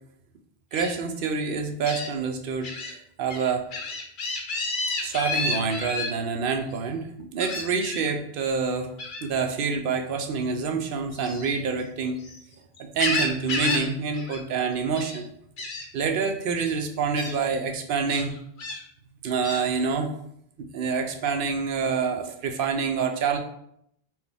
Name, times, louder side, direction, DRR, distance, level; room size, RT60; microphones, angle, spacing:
Gull seagull, 0.7-0.9 1.8-2.1 2.6-2.9 3.3-6.1 7.4-8.1 9.0-9.3 11.1-12.4 12.7-13.9 14.1-14.4 14.7-15.2 15.6-15.8 16.6-16.7 17.1-17.3 18.1-18.8 19.4-19.6, left 3 dB, 55° left, 0.8 m, -31 dB
voice 1, 0.7-3.7 5.0-8.9 9.2-12.2 12.9-15.3 15.9-18.4 19.2-20.1 20.6-23.4, right 5 dB, 65° right, 5 dB, 0.7 m, -27 dB
4.4 x 2.2 x 3.4 m, 0.72 s
omnidirectional pair, 1.1 m